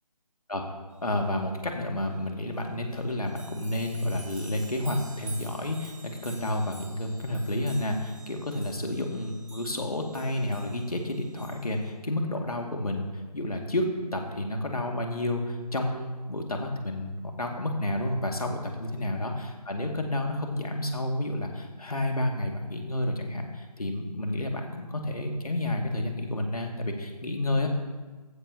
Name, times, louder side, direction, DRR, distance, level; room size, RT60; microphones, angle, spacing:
voice 1, 1.0-27.7, left 1 dB, 65° left, 2 dB, 2.2 m, -30 dB
sound 1, 2.5-2.6 2.9-11.9, right 2 dB, 55° right, 4.4 m, -49 dB
15.0 x 14.0 x 2.9 m, 1.3 s
figure-of-eight pair, 155°, 21 cm